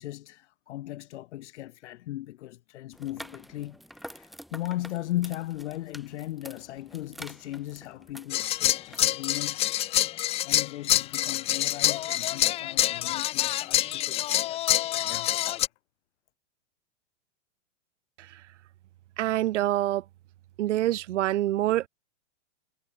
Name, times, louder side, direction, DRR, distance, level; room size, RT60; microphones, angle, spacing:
voice 1, 0.0-9.7 10.4-15.7, left 15 dB, 65° left, 2.1 m, -37 dB
sound 1, 2.9-9.0, equal, ahead, 2.3 m, -47 dB
sound 2, 8.3-15.7, left 14 dB, 15° left, 0.4 m, -26 dB
voice 2, 19.2-20.0 20.6-21.9, right 14 dB, 70° right, 1.8 m, -26 dB
hypercardioid pair, 140°, 37 cm